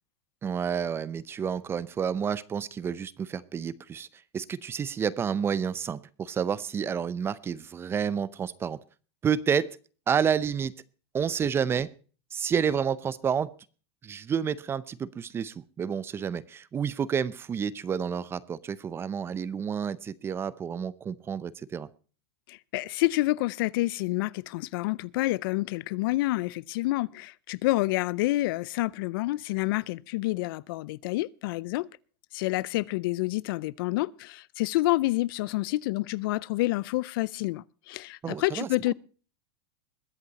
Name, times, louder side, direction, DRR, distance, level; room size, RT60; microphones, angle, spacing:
voice 1, 0.4-4.1 4.3-8.8 9.2-9.7 10.1-10.7 11.1-11.9 12.3-13.5 14.0-21.9 38.2-38.9, right 7 dB, 20° right, 0.6 m, -30 dB
voice 2, 22.5-31.9 32.3-38.9, left 19 dB, 65° left, 0.5 m, -28 dB
21.5 x 8.2 x 4.1 m
supercardioid pair, 145°, 13 cm